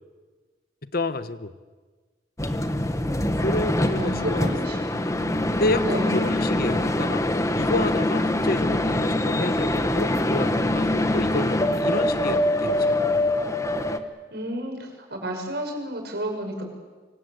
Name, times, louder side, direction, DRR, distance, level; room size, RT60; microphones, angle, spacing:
voice 1, 0.8-1.5 3.4-4.5 5.6-7.3 7.6-13.3, left 2 dB, 55° left, 12 dB, 1.3 m, -29 dB
sound 1, 2.4-14.0, left 1 dB, 15° left, 1.4 m, -24 dB
voice 2, 3.9-5.4 5.8-6.1 14.3-16.7, right 1 dB, 60° right, 3 dB, 6.6 m, -32 dB
26.0 x 25.0 x 8.2 m, 1.4 s
head